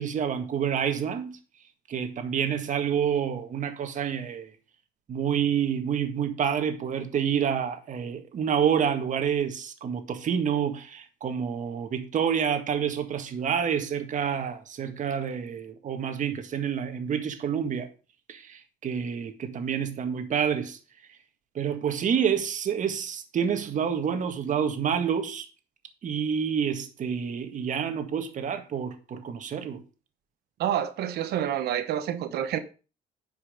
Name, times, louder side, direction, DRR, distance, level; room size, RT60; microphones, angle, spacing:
voice 1, 0.0-1.4 1.9-4.5 5.1-17.9 18.3-20.8 21.6-25.5 26.0-29.8, right 8 dB, 50° right, 1.8 m, -28 dB
voice 2, 30.6-32.6, right 10 dB, 70° right, 1.2 m, -28 dB
10.0 x 5.8 x 5.3 m
cardioid pair, 110°, 17 cm